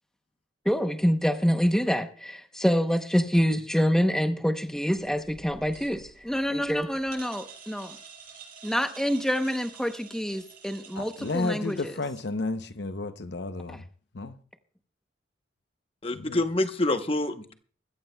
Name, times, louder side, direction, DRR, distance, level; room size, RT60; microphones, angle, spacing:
voice 1, 0.7-8.0 8.6-11.9 13.7-13.8, equal, 5° left, 0.8 m, -26 dB
sound 1, 4.9-12.4, right 6 dB, 45° right, 5.5 m, -49 dB
voice 2, 10.9-13.8 14.1-14.4 16.1-16.4, left 3 dB, 60° left, 0.7 m, -32 dB
voice 3, 16.0-17.5, left 2 dB, 30° left, 0.9 m, -27 dB
22.0 x 14.5 x 2.2 m
head